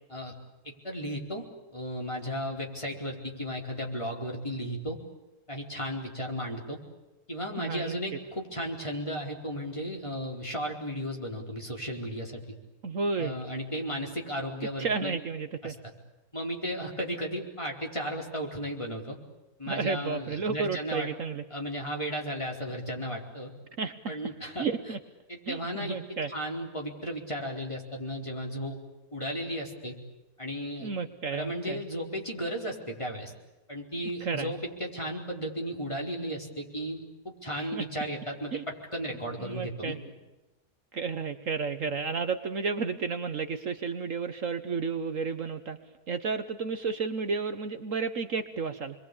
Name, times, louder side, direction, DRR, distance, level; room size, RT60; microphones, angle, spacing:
voice 1, 0.6-1.4 1.7-5.0 5.5-6.8 7.3-12.4 13.2-15.2 15.6-15.7 16.3-19.2 19.6-21.1 21.5-23.5 24.1-24.7 25.3-28.8 29.1-30.0 30.4-30.9 31.3-33.3 33.7-39.9, equal, 20° left, 0 dB, 4.6 m, -35 dB
voice 2, 7.6-8.0 12.8-13.4 14.8-15.8 19.7-21.4 23.8-24.2 24.6-25.0 25.5-26.3 30.8-31.8 34.2-34.5 37.6-37.8 38.5-38.6 39.4-40.0 40.9-45.8 46.1-48.9, right 5 dB, 60° right, 9 dB, 1.5 m, -32 dB
29.0 x 22.5 x 8.6 m, 1.1 s
omnidirectional pair, 1.6 m